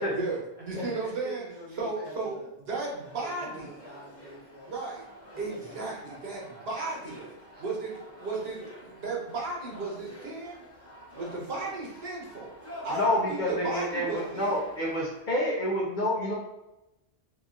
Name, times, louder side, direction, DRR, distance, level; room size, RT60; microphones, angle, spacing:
voice 1, 0.0-1.4 1.8-2.4 2.7-3.7 4.7-5.0 5.4-7.3 7.6-10.6 11.1-14.6, right 3 dB, 65° right, -3 dB, 1.0 m, -35 dB
voice 2, 0.8-2.5 3.1-4.7 6.1-6.2 7.4-8.0, right 2 dB, 10° right, -7 dB, 0.9 m, -46 dB
sound 1, 2.8-15.2, equal, 15° left, 0.5 m, -48 dB
voice 3, 12.9-16.3, left 1 dB, 55° left, -4 dB, 0.7 m, -28 dB
2.8 x 2.5 x 2.4 m, 0.95 s
omnidirectional pair, 1.1 m